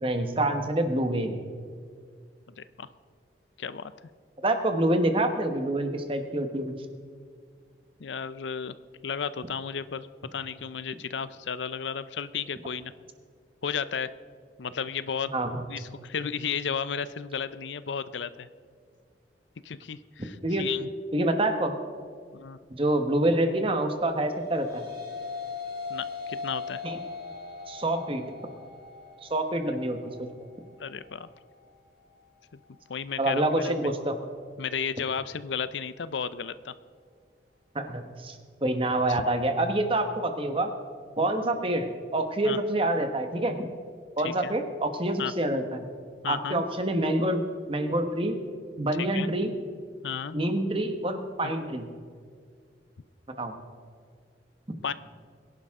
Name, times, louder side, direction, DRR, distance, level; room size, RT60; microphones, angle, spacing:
voice 1, 0.0-1.4 4.4-6.6 15.3-15.6 20.4-20.7 21.1-21.7 22.7-24.9 26.8-27.0 27.7-28.3 29.2-30.3 33.2-34.1 37.7-40.7 41.2-43.7 44.2-45.8 46.3-47.4 47.7-48.4 48.8-49.5 50.3-51.9 53.4-53.5, right 1 dB, 30° right, 6 dB, 1.2 m, -27 dB
voice 2, 2.6-2.9 3.6-3.9 8.0-8.7 9.0-12.9 13.6-14.1 14.6-15.3 15.7-18.5 19.6-20.9 22.3-22.6 25.9-26.8 30.8-31.3 32.9-33.9 34.6-36.7 39.1-39.2 42.4-42.6 44.2-44.6 45.2-45.3 46.2-46.6 49.0-49.3 50.0-50.4 51.4-51.5 54.8-54.9, left 6 dB, 80° left, 15 dB, 0.5 m, -33 dB
sound 1, 24.1-33.3, left 4 dB, 55° right, 3.8 m, -40 dB
22.0 x 11.0 x 3.7 m, 2.1 s
head